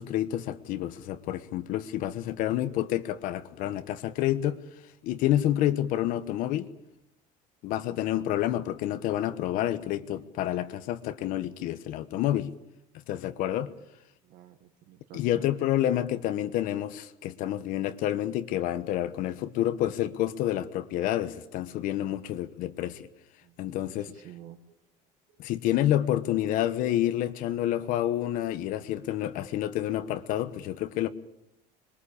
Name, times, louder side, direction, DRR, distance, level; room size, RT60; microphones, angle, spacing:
voice 1, 0.0-4.6 5.0-6.7 7.6-12.5 13.1-13.7 15.1-23.1 23.6-24.1 25.4-31.1, left 12 dB, 55° left, 1.2 m, -29 dB
voice 2, 14.2-15.5 23.4-24.8 25.3-25.4, right 11 dB, 55° right, 1.7 m, -51 dB
26.5 x 22.5 x 8.5 m
cardioid pair, 170°, 17 cm